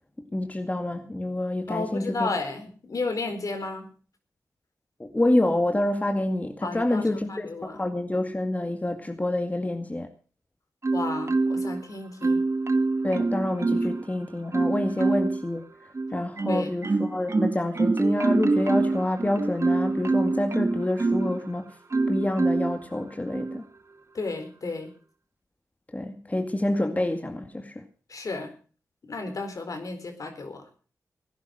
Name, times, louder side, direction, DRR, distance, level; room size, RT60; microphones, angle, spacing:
voice 1, 0.3-2.3 5.0-10.1 13.0-15.6 16.1-21.7 22.1-23.6 25.9-27.8, left 1 dB, 25° left, 5 dB, 2.1 m, -27 dB
voice 2, 1.7-3.9 6.6-7.8 10.9-12.4 16.5-16.7 24.1-24.9 28.1-28.5 29.0-30.6, left 3 dB, 60° left, 6 dB, 4.4 m, -33 dB
Marimba xylophone, 10.8-11.8 12.2-14.0 14.5-15.4 15.9-21.4 21.9-22.8 23.3-23.6, right 3 dB, 45° right, 1.4 m, -25 dB
16.5 x 10.5 x 6.5 m, 0.40 s
cardioid pair, 45°, 6 cm